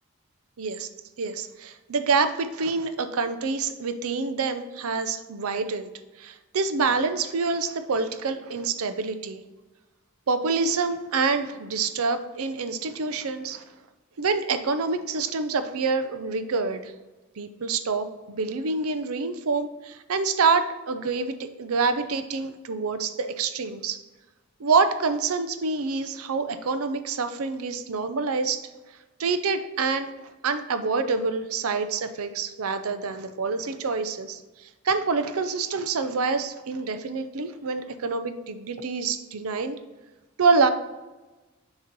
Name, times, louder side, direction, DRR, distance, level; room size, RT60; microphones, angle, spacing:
voice 1, 0.6-0.9 1.2-5.9 6.2-9.4 10.3-13.6 14.2-16.9 17.4-24.0 24.6-28.7 29.2-30.1 30.4-39.7 40.4-40.7, right 4 dB, 80° right, 10 dB, 0.5 m, -26 dB
6.5 x 3.0 x 5.3 m, 1.1 s
head